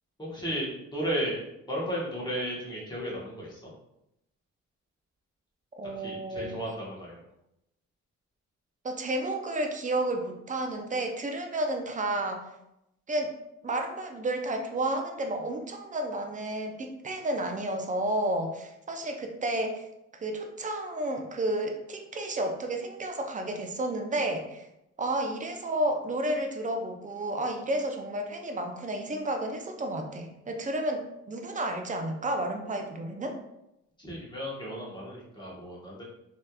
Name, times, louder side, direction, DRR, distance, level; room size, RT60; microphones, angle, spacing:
voice 1, 0.2-0.7 0.9-1.4 1.7-3.6 6.0-7.1 34.0-36.0, equal, 15° left, -6 dB, 1.3 m, -34 dB
voice 2, 5.8-6.6 8.8-12.4 13.1-13.3 13.6-19.8 20.2-24.7 25.0-33.4, right 1 dB, 25° right, 4 dB, 0.5 m, -31 dB
3.1 x 2.9 x 2.3 m, 0.85 s
cardioid pair, 90°, 30 cm